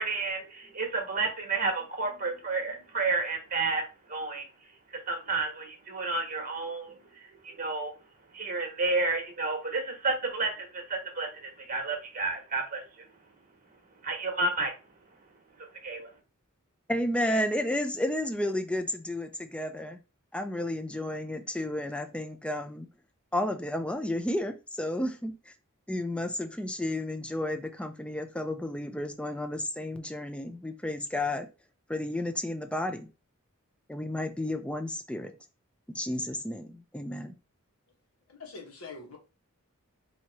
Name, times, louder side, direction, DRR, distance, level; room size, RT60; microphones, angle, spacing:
voice 1, 0.0-4.5 5.1-7.0 7.4-7.9 8.3-12.8 14.0-14.7 15.8-16.1, right 3 dB, 40° right, 1.2 m, -31 dB
voice 2, 16.9-20.0 20.3-22.9 23.3-25.5 25.9-31.5 31.9-33.1 33.9-35.3 35.9-37.3, left 1 dB, 5° left, 0.4 m, -32 dB
voice 3, 38.3-39.2, left 4 dB, 75° left, 1.3 m, -44 dB
4.5 x 2.8 x 2.8 m
head